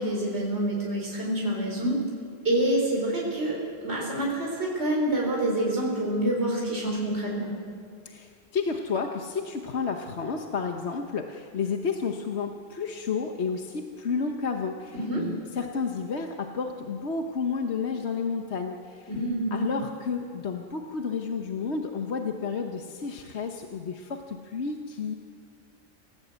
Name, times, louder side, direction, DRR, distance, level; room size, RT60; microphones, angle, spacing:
voice 1, 0.0-2.0 2.4-7.5 14.9-15.2 19.1-19.6, right 1 dB, 60° right, -2 dB, 4.2 m, -27 dB
voice 2, 8.0-19.1 19.5-25.1, left 5 dB, 60° left, 4 dB, 1.3 m, -31 dB
27.5 x 16.5 x 8.2 m, 2.3 s
omnidirectional pair, 1.3 m